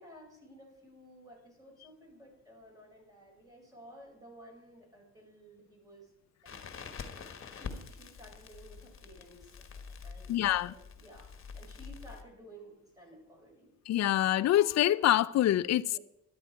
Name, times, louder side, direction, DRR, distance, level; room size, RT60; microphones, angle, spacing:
voice 1, 0.0-6.1 6.4-6.6 7.5-13.7 15.8-16.0, right 1 dB, 10° right, 5.7 m, -54 dB
Crackle, 6.5-12.2, left 5 dB, 45° left, 1.4 m, -46 dB
voice 2, 10.3-10.7 13.9-16.0, left 13 dB, 60° left, 0.5 m, -26 dB
13.0 x 10.5 x 4.6 m
cardioid pair, 90°, 30 cm